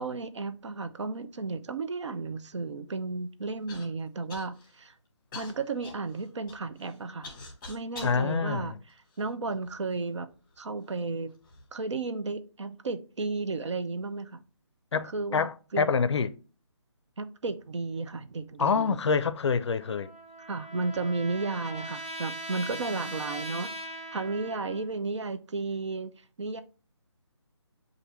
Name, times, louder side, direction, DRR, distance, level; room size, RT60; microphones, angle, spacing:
voice 1, 0.0-4.9 5.3-7.3 7.7-8.7 9.2-10.3 10.6-11.3 11.7-14.4 15.1-15.5 15.7-16.0 17.2-19.0 20.5-23.7 24.1-26.1 26.4-26.6, right 3 dB, 75° right, 0.6 m, -33 dB
Human voice / Cough, 3.7-3.9 4.3-4.8 5.3-8.2 8.9-9.7 10.5-10.6 11.3-11.6, left 3 dB, 15° left, 1.0 m, -45 dB
voice 2, 8.0-8.8 14.9-16.4 18.6-20.1, left 5 dB, 70° left, 0.4 m, -27 dB
Trumpet, 19.8-24.9, right 1 dB, 20° right, 0.3 m, -40 dB
6.5 x 2.5 x 3.0 m
hypercardioid pair, 165°, 15 cm